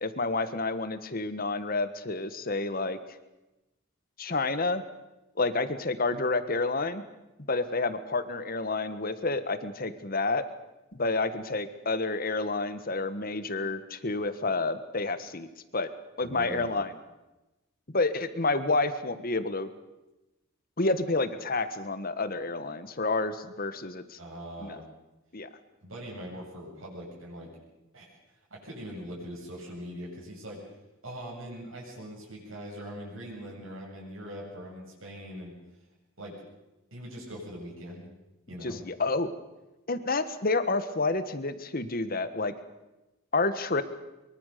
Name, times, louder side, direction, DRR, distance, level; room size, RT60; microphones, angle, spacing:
voice 1, 0.0-3.0 4.2-4.8 5.4-7.0 7.5-10.4 10.9-15.5 15.7-15.9 16.2-16.9 17.9-19.7 20.8-24.2 24.6-24.7 25.3-25.5 38.6-39.3 39.9-42.5 43.3-43.8, left 3 dB, 45° left, 11 dB, 1.6 m, -29 dB
voice 2, 16.2-16.7 24.2-24.8 25.8-27.5 27.9-30.7 31.0-35.5 36.2-36.4 36.9-38.1 38.5-38.8, equal, 75° right, -4 dB, 7.9 m, -42 dB
23.5 x 23.5 x 6.8 m, 0.99 s
head